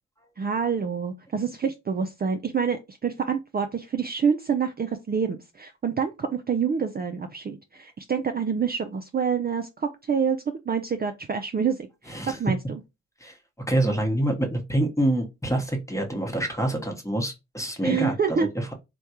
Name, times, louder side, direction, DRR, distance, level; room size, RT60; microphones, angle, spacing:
voice 1, 0.4-10.4 10.7-12.6 17.8-18.5, right 6 dB, 30° right, 0.4 m, -27 dB
voice 2, 12.1-12.4 13.2-13.4 13.7-18.7, right 1 dB, 10° left, 1.0 m, -26 dB
3.3 x 2.2 x 2.8 m
supercardioid pair, 50°, 32 cm